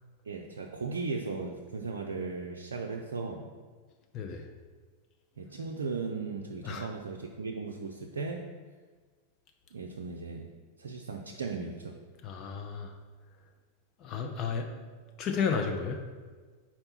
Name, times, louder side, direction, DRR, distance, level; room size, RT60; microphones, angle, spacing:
voice 1, 0.2-3.5 5.4-8.4 9.7-10.5 10.8-11.9, right 4 dB, 70° right, 0 dB, 0.5 m, -37 dB
voice 2, 4.1-4.5 6.6-6.9 12.2-12.9 14.0-14.7 15.2-16.0, left 6 dB, 35° left, 4 dB, 0.6 m, -32 dB
4.4 x 4.4 x 5.7 m, 1.4 s
figure-of-eight pair, 90°, 0 cm